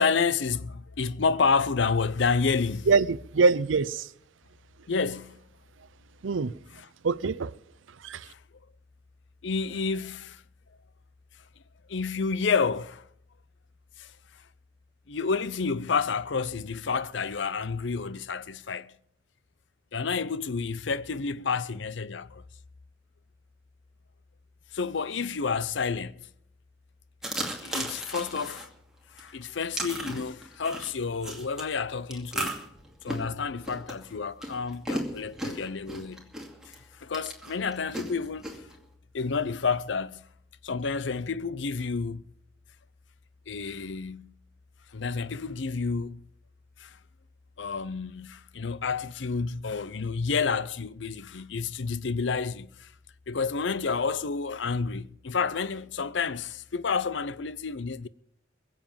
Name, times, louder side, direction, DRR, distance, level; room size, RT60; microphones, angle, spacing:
voice 1, 0.0-2.9 4.9-5.4 6.7-6.9 8.3-8.4 9.4-10.4 11.9-13.1 14.0-14.1 15.1-18.9 19.9-22.4 24.7-26.2 27.4-28.7 29.1-32.5 33.0-36.3 36.7-38.6 39.1-40.2 40.6-42.2 43.5-44.3 44.9-46.2 46.8-47.0 47.6-52.9 53.3-58.1, left 5 dB, 70° left, 0.6 m, -30 dB
voice 2, 2.9-4.1 6.2-6.5 7.0-7.5 8.0-8.3, right 4 dB, 85° right, 0.6 m, -24 dB
sound 1, 27.2-28.7 29.2-31.6 32.1-36.8 37.1-38.7, right 1 dB, 5° right, 2.4 m, -35 dB
22.5 x 7.6 x 7.3 m
head